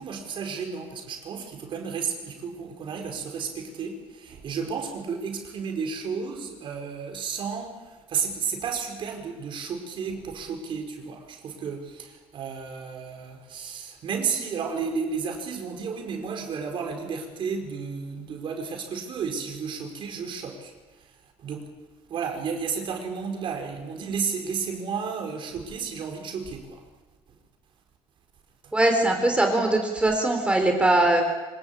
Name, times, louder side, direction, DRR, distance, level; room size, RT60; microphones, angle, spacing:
voice 1, 0.0-21.1 21.4-21.7 22.1-26.8 28.6-28.7, right 6 dB, 55° right, 3 dB, 4.9 m, -32 dB
voice 2, 28.7-31.2, right 2 dB, 10° right, 3 dB, 3.9 m, -21 dB
26.0 x 19.0 x 8.7 m, 1.2 s
cardioid pair, 115°, 10 cm